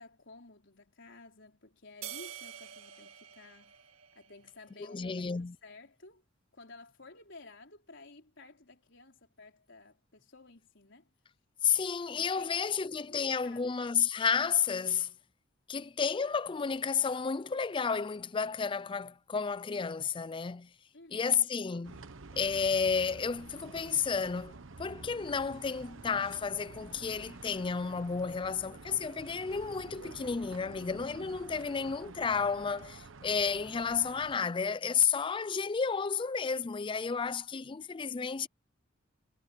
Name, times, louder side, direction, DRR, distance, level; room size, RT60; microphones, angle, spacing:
voice 1, 0.0-3.8 4.1-6.2 6.5-11.1 12.2-13.8 20.9-21.5 37.6-37.8, left 3 dB, 65° left, 4.5 m, -54 dB
sound 1, 2.0-4.6, right 10 dB, 90° right, 2.6 m, -47 dB
voice 2, 4.8-5.6 11.6-15.1 15.7-20.7 21.1-22.0 22.4-38.5, left 6 dB, 25° left, 0.4 m, -32 dB
sound 2, 21.8-34.4, right 3 dB, 70° right, 1.1 m, -49 dB
head